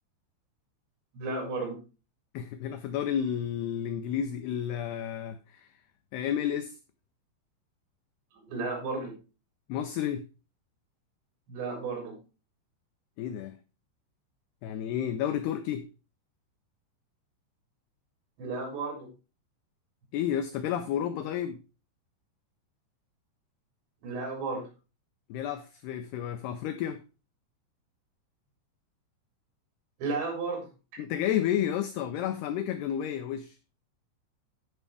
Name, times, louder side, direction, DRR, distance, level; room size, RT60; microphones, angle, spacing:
voice 1, 1.1-1.8 8.4-9.2 11.5-12.2 18.4-19.1 24.0-24.7 30.0-30.7, right 3 dB, 70° right, 6.1 m, -33 dB
voice 2, 2.3-5.7 6.1-6.7 9.7-10.3 13.2-13.5 14.6-15.9 20.1-21.6 25.3-27.0 31.0-33.6, left 10 dB, 85° left, 2.2 m, -31 dB
14.5 x 5.3 x 3.3 m
omnidirectional pair, 5.4 m